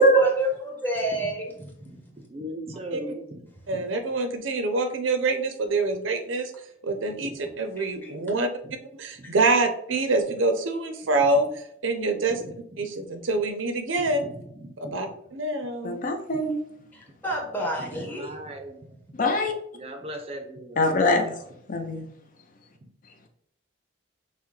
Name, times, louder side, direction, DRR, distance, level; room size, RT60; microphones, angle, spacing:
voice 1, 0.0-1.5 7.8-8.1 16.9-18.3, equal, 10° left, -1 dB, 0.9 m, -30 dB
voice 2, 1.8-3.4 3.7-3.8 7.2-7.3 8.6-8.7 9.2-9.3 12.4-12.9 14.0-15.0 17.8-19.0 19.7-21.4, equal, 30° right, 4 dB, 0.5 m, -39 dB
voice 3, 3.7-6.5 6.8-7.3 7.6-8.5 9.0-11.5 11.8-12.4 12.8-14.3 14.9-16.0, right 3 dB, 75° right, 7 dB, 0.6 m, -25 dB
voice 4, 15.8-16.6 19.1-19.5 20.8-21.3 21.7-22.1, equal, 45° left, 4 dB, 0.5 m, -21 dB
5.6 x 2.1 x 3.1 m, 0.74 s
head